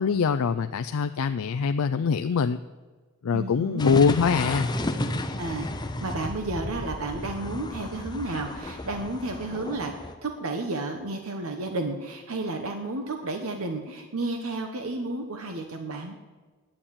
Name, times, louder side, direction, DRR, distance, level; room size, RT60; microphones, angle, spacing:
voice 1, 0.0-2.6 3.2-4.7, left 5 dB, 75° left, 10 dB, 0.4 m, -23 dB
voice 2, 3.3-3.8 5.4-16.2, right 2 dB, 75° right, 5 dB, 1.0 m, -32 dB
sound 1, 3.8-10.1, left 1 dB, 20° left, 0.6 m, -32 dB
10.0 x 8.8 x 8.6 m, 1.3 s
head